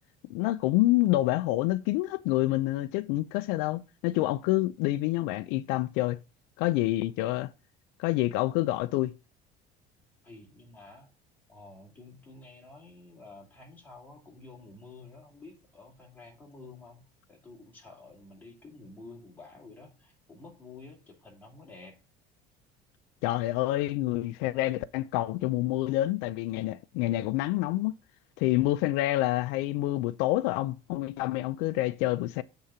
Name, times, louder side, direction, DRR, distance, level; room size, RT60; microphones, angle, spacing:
voice 1, 0.3-6.2 6.6-7.5 8.0-9.1 23.2-27.9 28.4-32.4, left 17 dB, 90° left, 0.4 m, -27 dB
voice 2, 10.2-11.1 11.5-17.0 17.3-22.0, left 3 dB, 10° left, 2.3 m, -50 dB
7.3 x 3.8 x 5.5 m
cardioid pair, 165°, 17 cm